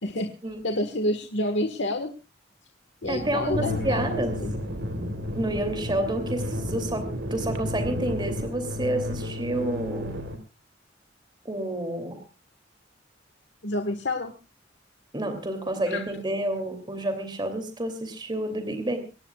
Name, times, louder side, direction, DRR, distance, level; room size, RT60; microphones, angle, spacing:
voice 1, 0.6-2.1 3.0-4.0 4.4-4.5 13.6-14.3 15.9-16.0, left 1 dB, 65° left, 6 dB, 1.6 m, -28 dB
sound 1, 3.0-8.5, equal, 50° right, 4.7 m, -37 dB
voice 2, 3.1-4.4 5.3-10.1 11.4-12.2 15.1-19.0, right 1 dB, 25° right, 7 dB, 2.8 m, -29 dB
sound 2, 3.5-10.4, left 1 dB, 75° right, 3.5 m, -33 dB
24.0 x 19.0 x 2.4 m, 0.32 s
head